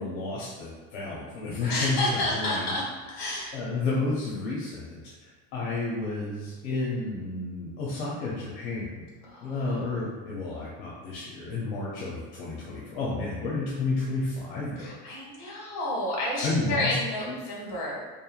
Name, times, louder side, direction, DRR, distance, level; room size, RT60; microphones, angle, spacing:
voice 1, 0.0-2.7 3.5-5.0 5.5-9.0 9.4-14.9 16.4-17.0 17.3-17.4, left 3 dB, 80° left, -5 dB, 0.6 m, -31 dB
voice 2, 1.7-2.8 3.1-3.5 9.2-9.7 14.8-18.0, left 1 dB, 60° left, -4 dB, 1.1 m, -30 dB
3.0 x 2.1 x 2.3 m, 1.3 s
cardioid pair, 165°, 29 cm